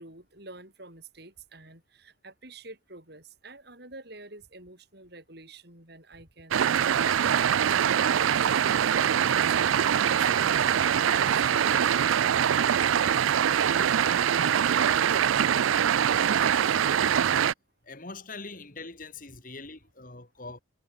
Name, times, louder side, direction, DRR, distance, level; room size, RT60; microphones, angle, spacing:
voice 1, 0.0-7.3 7.7-11.7 12.0-17.1, right 2 dB, 55° right, 6.6 m, -48 dB
sound 1, 6.5-17.5, right 9 dB, 85° right, 0.4 m, -23 dB
voice 2, 17.8-20.6, left 3 dB, 45° left, 3.5 m, -42 dB
head